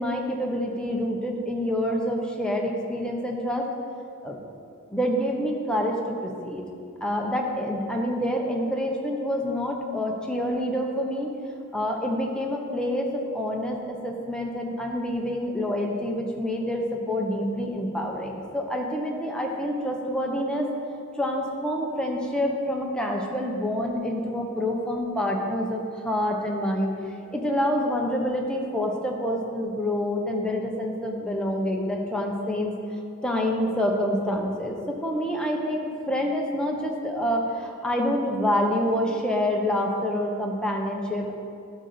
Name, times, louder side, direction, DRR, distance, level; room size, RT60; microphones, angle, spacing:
voice 1, 0.0-3.7 4.2-4.4 4.9-6.6 7.0-11.3 11.7-20.7 21.2-26.9 27.3-32.7 33.2-41.3, equal, 5° left, 0 dB, 1.0 m, -27 dB
11.5 x 4.1 x 6.8 m, 2.4 s
head